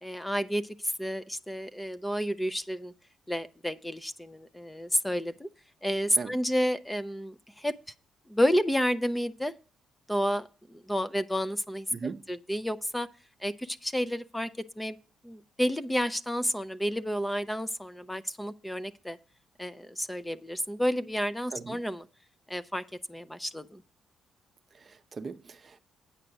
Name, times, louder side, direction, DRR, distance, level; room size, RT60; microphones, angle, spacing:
voice 1, 0.0-2.9 3.3-5.5 5.8-7.7 8.3-9.5 10.1-11.9 12.3-13.1 13.4-14.5 14.8-15.0 15.2-19.2 19.6-22.0 22.5-22.8 23.1-23.8, equal, 5° left, 0.5 m, -30 dB
voice 2, 11.9-12.2 21.5-21.8 24.7-25.8, right 5 dB, 40° right, 0.6 m, -39 dB
8.9 x 5.0 x 7.7 m
cardioid pair, 90°, 0 cm